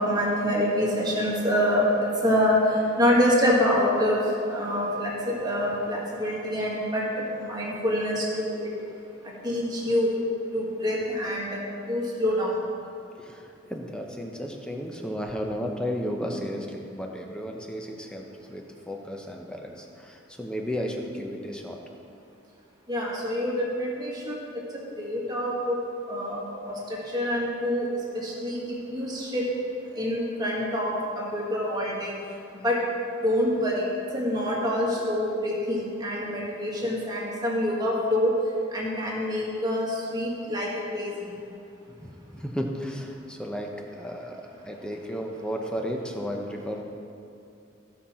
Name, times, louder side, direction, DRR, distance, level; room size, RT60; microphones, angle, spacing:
voice 1, 0.0-1.9 2.2-4.2 4.5-8.7 9.4-10.1 10.5-11.6 11.9-12.6 22.9-24.4 25.0-25.8 26.1-27.9 28.2-28.6 28.9-29.4 29.9-32.1 32.6-32.8 33.2-33.8 34.1-38.3 38.7-40.7 40.9-41.1, equal, 20° right, -5 dB, 1.8 m, -26 dB
voice 2, 13.2-21.8 35.0-35.1 36.8-36.9 42.0-43.7 44.0-46.8, equal, 5° left, 1 dB, 0.8 m, -34 dB
15.5 x 5.6 x 4.3 m, 2.6 s
head